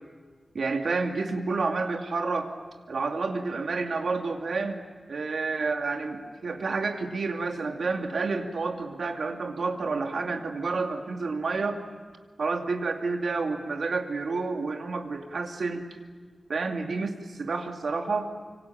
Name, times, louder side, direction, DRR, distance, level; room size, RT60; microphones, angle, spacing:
voice 1, 0.5-2.5 2.9-11.8 12.4-15.9 16.5-18.3, right 4 dB, 90° right, 3 dB, 2.5 m, -29 dB
25.5 x 25.0 x 8.9 m, 1.5 s
wide cardioid pair, 100°, 0 cm